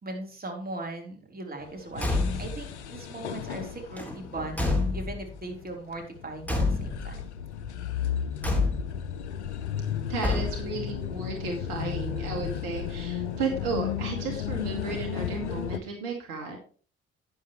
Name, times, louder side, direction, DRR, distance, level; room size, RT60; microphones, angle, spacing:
voice 1, 0.0-7.2, right 2 dB, 25° right, 1 dB, 3.8 m, -39 dB
sound 1, 1.6-15.8, left 9 dB, 85° left, 0.6 m, -35 dB
Car / Truck / Slam, 1.9-2.7 3.9-5.4 6.4-7.2 8.4-9.1 10.2-10.9, left 2 dB, 5° left, 3.7 m, -28 dB
voice 2, 10.1-16.6, right 4 dB, 70° right, 1 dB, 2.4 m, -33 dB
11.5 x 10.0 x 3.1 m, 0.38 s
figure-of-eight pair, 45°, 34 cm